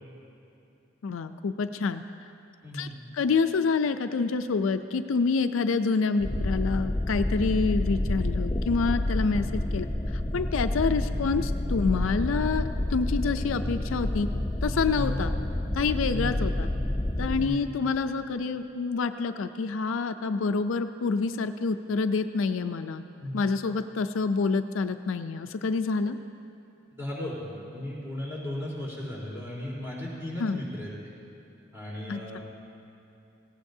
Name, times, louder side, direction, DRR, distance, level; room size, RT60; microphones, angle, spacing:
voice 1, 1.0-2.0 2.7-2.9 3.1-14.3 14.6-15.3 15.7-16.7 17.2-23.0 23.3-26.2 30.4-30.6 32.1-32.4, left 4 dB, 70° left, 9 dB, 0.4 m, -27 dB
voice 2, 2.6-3.0 14.9-15.2 16.1-16.4 17.4-17.7 23.2-23.4 27.0-31.1 31.7-32.4, left 1 dB, 10° right, -6 dB, 3.7 m, -36 dB
sound 1, 6.2-17.5, left 1 dB, 15° left, 0.7 m, -29 dB
18.5 x 16.0 x 2.7 m, 2.9 s
head